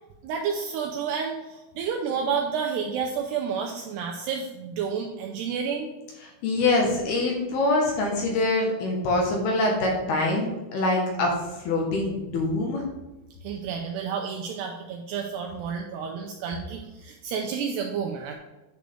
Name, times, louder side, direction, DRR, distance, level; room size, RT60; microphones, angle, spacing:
voice 1, 0.2-5.9 13.4-18.3, right 6 dB, 80° right, 1 dB, 2.4 m, -30 dB
voice 2, 6.2-12.9, left 2 dB, 70° left, 0 dB, 2.8 m, -24 dB
10.0 x 6.4 x 3.4 m, 1.0 s
omnidirectional pair, 5.5 m